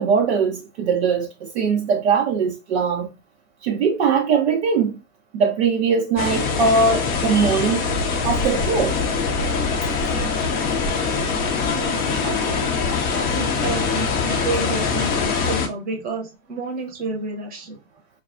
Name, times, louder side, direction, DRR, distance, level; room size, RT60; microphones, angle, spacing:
voice 1, 0.0-3.1 3.6-5.0 5.3-7.8 8.2-9.0, right 5 dB, 45° right, 0.6 m, -20 dB
sound 1, 6.2-15.7, left 5 dB, 20° left, 0.6 m, -23 dB
voice 2, 7.3-7.7 11.6-12.7 13.1-17.8, right 4 dB, 20° right, 0.9 m, -30 dB
4.5 x 2.3 x 2.5 m
figure-of-eight pair, 95°, 46 cm